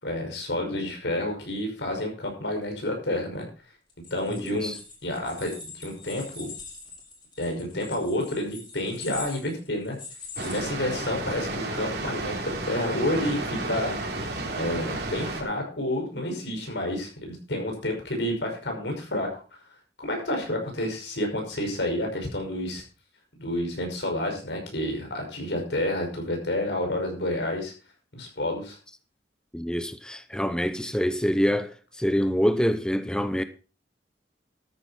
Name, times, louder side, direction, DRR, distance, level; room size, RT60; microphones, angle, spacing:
voice 1, 0.0-3.5 4.1-4.7 5.0-6.5 7.4-10.0 10.4-14.0 14.6-19.3 20.0-22.8 23.4-27.7 28.1-28.8, left 1 dB, 85° left, 5.7 m, -29 dB
sound 1, 3.9-11.3, left 4 dB, 30° left, 4.3 m, -43 dB
voice 2, 4.3-4.8 29.5-33.4, equal, 5° left, 0.7 m, -26 dB
Water, 10.4-15.4, right 2 dB, 65° right, 3.3 m, -32 dB
13.0 x 10.0 x 4.3 m
head